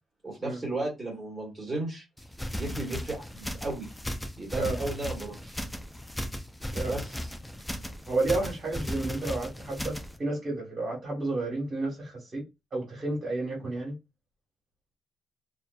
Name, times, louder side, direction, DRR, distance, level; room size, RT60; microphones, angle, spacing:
voice 1, 0.2-2.0 2.5-3.9 4.4-5.6 6.8-7.3, right 2 dB, 15° right, 1.3 m, -35 dB
sound 1, 2.2-10.2, equal, 5° left, 0.4 m, -36 dB
voice 2, 8.1-12.4 12.7-13.9, right 2 dB, 35° right, 1.3 m, -31 dB
2.4 x 2.4 x 2.2 m
cardioid pair, 90°, 0 cm